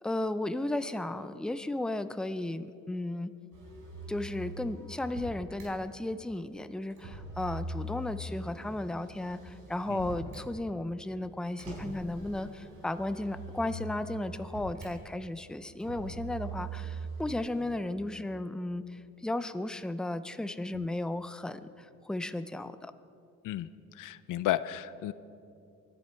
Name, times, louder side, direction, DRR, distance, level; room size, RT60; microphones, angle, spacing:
voice 1, 0.0-3.3 4.1-22.9, left 1 dB, ahead, 11 dB, 0.5 m, -35 dB
Motor vehicle (road), 3.5-5.7 6.9-10.5 11.6-14.9 15.8-17.8, right 2 dB, 80° right, 4.2 m, -42 dB
voice 2, 23.4-25.1, left 13 dB, 85° left, 15 dB, 0.5 m, -33 dB
24.0 x 11.0 x 4.5 m, 2.6 s
cardioid pair, 90°, 31 cm